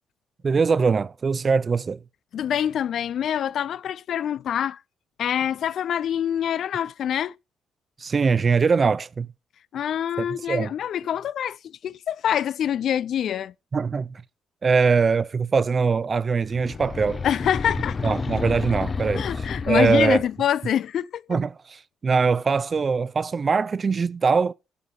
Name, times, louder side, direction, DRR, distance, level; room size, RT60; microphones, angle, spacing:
voice 1, 0.4-2.0 8.0-9.3 10.2-10.7 13.7-14.2 14.6-17.2 18.0-19.3 19.7-20.2 21.3-24.5, right 5 dB, 40° right, 0.5 m, -22 dB
voice 2, 2.3-4.8 5.2-7.3 9.7-13.5 17.2-18.1 19.1-21.4, left 9 dB, 65° left, 0.5 m, -25 dB
sound 1, 16.4-20.4, left 4 dB, 35° left, 0.8 m, -30 dB
12.5 x 9.7 x 3.9 m
cardioid pair, 90°, 0 cm